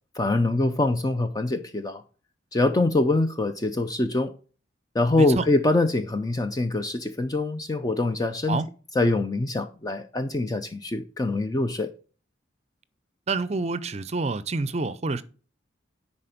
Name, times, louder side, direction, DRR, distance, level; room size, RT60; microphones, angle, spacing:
voice 1, 0.1-2.0 2.5-4.3 4.9-8.6 9.0-11.9, left 2 dB, 20° left, 0.4 m, -24 dB
voice 2, 13.3-15.2, right 3 dB, 35° right, 0.5 m, -27 dB
10.0 x 4.3 x 5.1 m
head